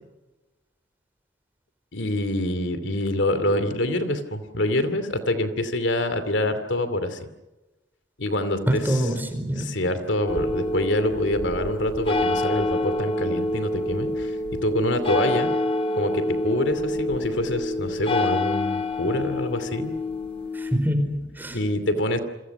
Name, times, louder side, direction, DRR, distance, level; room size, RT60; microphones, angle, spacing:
voice 1, 1.9-7.2 8.2-9.0 9.6-14.4 14.6-15.5 15.9-19.9 21.5-22.2, left 1 dB, 75° left, 10 dB, 2.7 m, -26 dB
voice 2, 8.7-9.6 20.5-21.6, equal, 10° right, 6 dB, 4.8 m, -25 dB
sound 1, 10.2-20.8, left 1 dB, 30° left, 2.7 m, -27 dB
29.0 x 26.5 x 6.1 m, 1.1 s
head